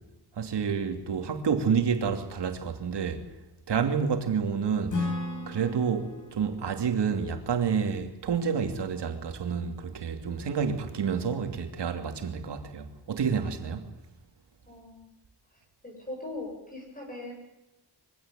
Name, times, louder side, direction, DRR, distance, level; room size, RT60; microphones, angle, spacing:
voice 1, 0.4-3.2 3.7-5.2 5.5-13.8, right 6 dB, 80° right, 2.9 m, -29 dB
Acoustic guitar / Strum, 4.9-8.5, left 2 dB, 50° left, 5.4 m, -36 dB
voice 2, 14.7-15.1 15.8-17.3, left 2 dB, 20° left, 7.5 m, -40 dB
23.5 x 16.5 x 9.1 m
wide cardioid pair, 165°, 41 cm